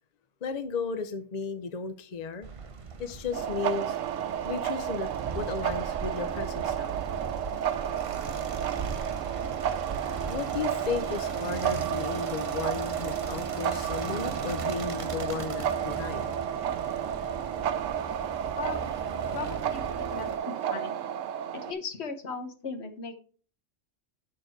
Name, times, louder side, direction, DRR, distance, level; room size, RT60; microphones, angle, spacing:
voice 1, 0.4-2.5 3.0-4.0 4.4-7.0 10.3-16.3, left 5 dB, 45° left, 0.6 m, -34 dB
sound 1, 2.4-20.4, right 4 dB, 35° right, 0.6 m, -39 dB
sound 2, 3.3-21.7, right 9 dB, 85° right, 1.0 m, -32 dB
voice 2, 19.3-21.0 21.5-23.1, left 4 dB, 60° left, 1.4 m, -37 dB
6.7 x 6.4 x 4.5 m
omnidirectional pair, 1.3 m